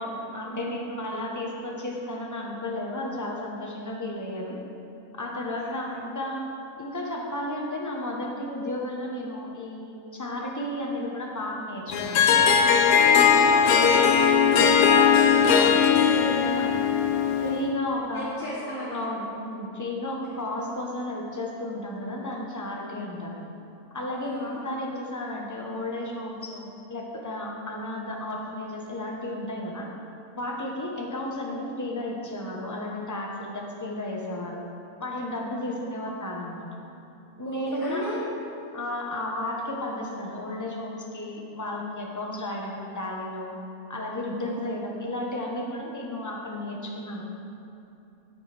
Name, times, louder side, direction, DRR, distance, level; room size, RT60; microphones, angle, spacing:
voice 1, 0.0-4.6 5.1-6.4 6.8-12.2 12.6-13.5 14.4-16.8 17.4-18.4 18.9-23.4 23.9-29.9 30.4-34.6 35.0-36.7 37.4-38.1 38.7-43.5 43.9-47.2, left 1 dB, 15° left, -1 dB, 0.7 m, -33 dB
Harp, 11.9-17.7, left 7 dB, 80° left, 1.1 m, -19 dB
voice 2, 13.1-14.1 18.1-19.0 20.3-20.4 24.2-24.6 35.7-35.8 37.4-38.3 44.3-44.6, left 1 dB, 35° left, -9 dB, 1.3 m, -35 dB
9.3 x 8.4 x 3.4 m, 2.8 s
omnidirectional pair, 1.6 m